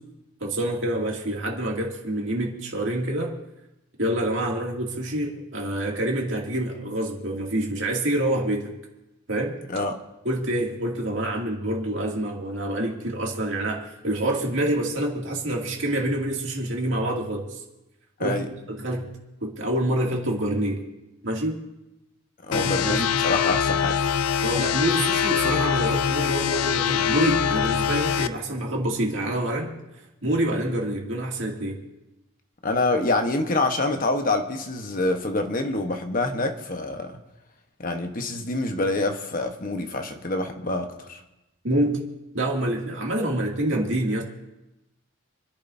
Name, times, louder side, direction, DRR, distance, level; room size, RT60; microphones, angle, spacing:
voice 1, 0.4-3.3 4.0-8.7 9.3-9.6 10.2-17.6 18.2-19.1 19.4-20.8 21.2-21.6 22.5-23.1 24.4-29.7 30.2-31.8 41.6-42.0 42.3-44.2, right 1 dB, 60° right, -1 dB, 2.5 m, -27 dB
voice 2, 22.4-24.0 32.6-37.1 37.8-41.2, left 2 dB, 40° left, 5 dB, 1.2 m, -26 dB
sound 1, 22.5-28.3, left 8 dB, 90° left, 0.5 m, -23 dB
28.5 x 10.5 x 2.7 m, 0.96 s
head